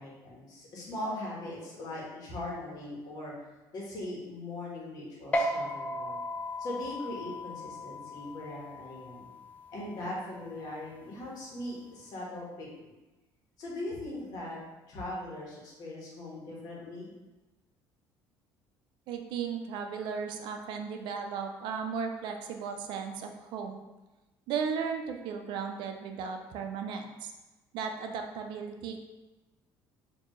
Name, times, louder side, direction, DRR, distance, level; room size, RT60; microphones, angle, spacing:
voice 1, 0.0-3.3 3.7-6.2 6.6-9.3 9.7-12.7 13.6-14.6 14.9-17.1, left 1 dB, 50° left, -4 dB, 1.3 m, -40 dB
sound 1, 5.3-12.1, left 1 dB, 20° left, 0.3 m, -37 dB
voice 2, 19.1-23.8 24.5-27.3 27.7-29.0, right 6 dB, 70° right, 4 dB, 0.5 m, -35 dB
4.4 x 2.7 x 3.0 m, 1.1 s
cardioid pair, 140°, 8 cm